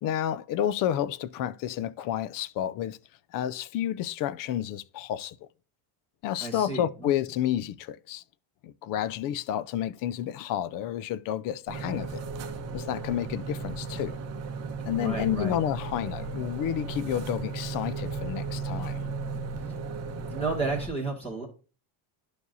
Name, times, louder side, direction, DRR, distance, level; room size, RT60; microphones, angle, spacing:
voice 1, 0.0-3.0 3.3-5.4 6.2-8.2 8.6-12.2 12.7-14.1 14.9-19.0, left 11 dB, 45° left, 0.4 m, -30 dB
voice 2, 6.4-7.1 14.9-15.5 20.2-21.5, right 3 dB, 10° left, 2.3 m, -32 dB
sound 1, 11.7-20.9, right 4 dB, 30° right, 1.1 m, -35 dB
11.5 x 4.7 x 2.6 m
cardioid pair, 165°, 48 cm